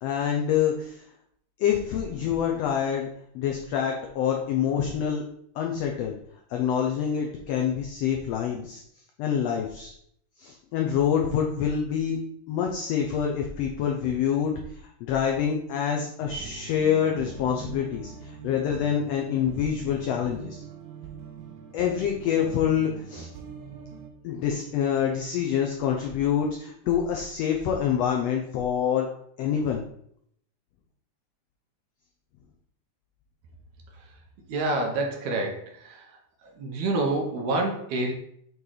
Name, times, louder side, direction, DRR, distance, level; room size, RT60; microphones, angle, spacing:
voice 1, 0.0-1.0 1.6-3.1 3.3-5.2 5.6-6.1 6.5-8.8 9.2-9.9 10.4-12.2 12.5-14.5 15.0-20.6 21.7-23.3 24.2-29.1 29.4-29.8, left 8 dB, 85° left, 1 dB, 1.4 m, -26 dB
sound 1, 16.2-24.1, right 6 dB, 90° right, 2.3 m, -43 dB
voice 2, 34.5-36.0 36.6-38.1, right 2 dB, 70° right, 2 dB, 2.2 m, -27 dB
8.2 x 3.1 x 3.9 m, 0.68 s
omnidirectional pair, 3.6 m